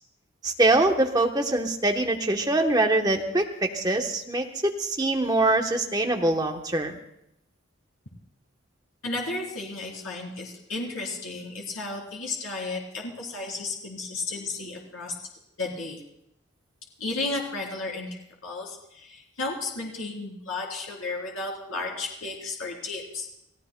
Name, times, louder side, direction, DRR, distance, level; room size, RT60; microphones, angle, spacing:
voice 1, 0.4-6.9, right 2 dB, 20° right, 3 dB, 1.0 m, -24 dB
voice 2, 9.0-15.1 15.6-16.0 17.0-23.3, left 3 dB, 90° left, -2 dB, 3.3 m, -33 dB
30.0 x 15.5 x 2.2 m, 0.80 s
head